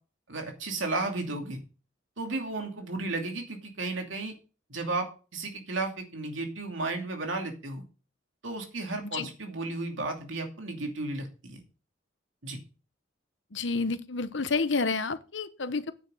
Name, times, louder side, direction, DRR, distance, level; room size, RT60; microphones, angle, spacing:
voice 1, 0.3-1.6 2.2-4.4 4.7-7.8 8.4-11.6 12.4-12.6, right 2 dB, 85° right, 2.6 m, -34 dB
voice 2, 13.5-15.9, left 4 dB, 70° left, 1.0 m, -29 dB
9.7 x 6.4 x 6.3 m
head